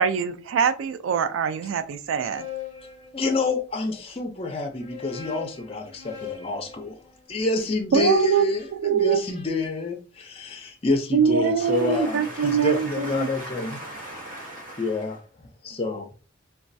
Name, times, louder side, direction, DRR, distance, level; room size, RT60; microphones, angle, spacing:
voice 1, 0.0-2.5 7.9-9.2 11.1-13.3, right 6 dB, 80° right, 0.3 m, -23 dB
sound 1, 1.9-3.8 4.6-8.7, left 8 dB, 20° right, 1.4 m, -42 dB
voice 2, 3.1-7.0 7.3-13.8 14.8-15.2 15.6-16.1, left 2 dB, 30° left, 0.5 m, -28 dB
voice 3, 11.6-15.2, right 1 dB, 40° right, 1.2 m, -38 dB
3.0 x 2.2 x 2.5 m
head